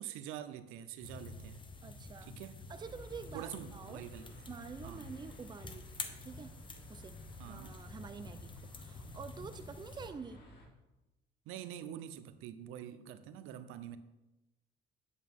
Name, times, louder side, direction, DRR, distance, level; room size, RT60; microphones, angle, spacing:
voice 1, 0.0-1.6 2.3-2.5 3.3-4.3 4.8-5.1 7.4-7.7 11.5-14.0, right 10 dB, 85° right, 12 dB, 0.7 m, -45 dB
sound 1, 1.0-10.1, left 3 dB, 25° left, 1.0 m, -49 dB
voice 2, 1.8-2.4 2.7-4.0 4.5-5.9 6.2-6.5 6.9-10.5, right 5 dB, 20° right, 10 dB, 0.5 m, -48 dB
sound 2, 2.7-10.7, left 1 dB, 50° left, 2.6 m, -56 dB
9.4 x 8.3 x 3.6 m, 1.0 s
cardioid pair, 110°, 21 cm